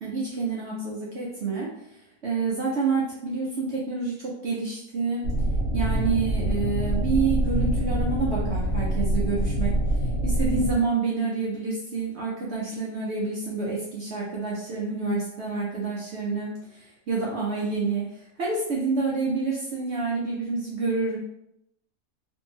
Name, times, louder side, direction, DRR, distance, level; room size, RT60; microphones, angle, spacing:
voice 1, 0.0-2.0 2.2-5.2 5.7-10.0 10.2-21.2, right 4 dB, 65° right, -5 dB, 0.7 m, -28 dB
sound 1, 5.2-10.7, right 1 dB, 55° left, 0.9 m, -25 dB
2.7 x 2.6 x 2.7 m, 0.80 s
omnidirectional pair, 1.7 m